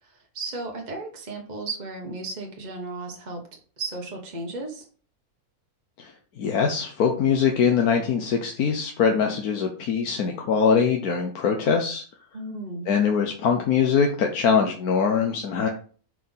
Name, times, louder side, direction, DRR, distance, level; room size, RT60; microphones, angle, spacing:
voice 1, 0.0-4.9 12.3-12.9, right 2 dB, 30° right, 1 dB, 1.2 m, -35 dB
voice 2, 6.4-12.0 12.9-15.7, left 6 dB, 85° left, 2 dB, 1.4 m, -22 dB
5.7 x 4.9 x 5.5 m, 0.42 s
omnidirectional pair, 1.6 m